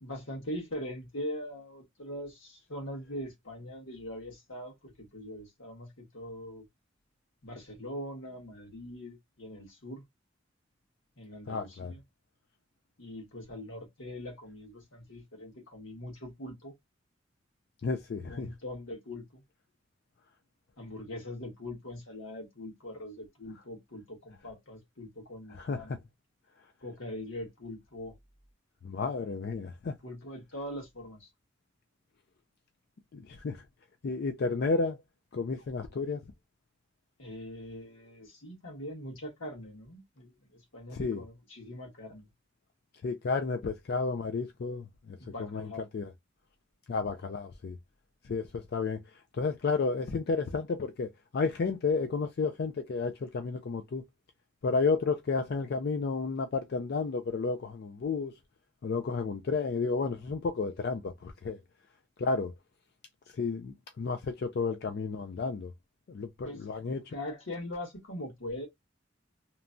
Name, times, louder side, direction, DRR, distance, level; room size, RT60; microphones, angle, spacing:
voice 1, 0.0-6.7 7.4-10.0 11.2-12.0 13.0-16.7 18.3-19.4 20.8-26.0 26.8-28.1 30.0-31.3 37.2-42.3 45.2-45.8 66.4-66.6 67.1-68.7, left 1 dB, 85° left, 1.4 m, -42 dB
voice 2, 11.5-11.9 17.8-18.5 25.5-26.0 28.8-30.0 33.1-33.6 34.0-35.0 35.3-36.2 40.9-41.2 43.0-46.1 46.9-47.8 48.2-54.0 54.6-58.3 58.8-61.6 62.2-62.5 63.3-65.7 66.1-67.1, left 4 dB, 55° left, 0.4 m, -32 dB
3.0 x 2.2 x 2.4 m
head